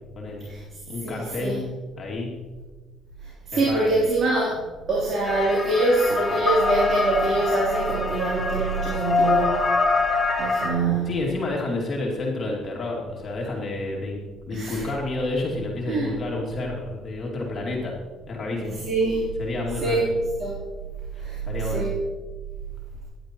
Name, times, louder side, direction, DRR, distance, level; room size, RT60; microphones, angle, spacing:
voice 1, 0.2-0.5 0.9-1.7 2.0-2.3 3.5-3.9 11.1-14.2 14.5-17.9 18.3-18.8 19.4-20.0 21.5-21.9, left 2 dB, 45° left, -2 dB, 2.5 m, -29 dB
voice 2, 1.0-1.6 3.5-4.6 4.9-9.6 10.4-11.1 14.5-14.9 15.9-16.1 18.6-19.3 19.8-20.1 20.4-20.6 21.2-21.4 21.6-22.0, right 2 dB, 50° right, -6 dB, 3.4 m, -24 dB
sound 1, 5.2-10.7, left 3 dB, 20° left, 2.0 m, -24 dB
13.5 x 10.5 x 3.1 m, 1.3 s
supercardioid pair, 80°, 0 cm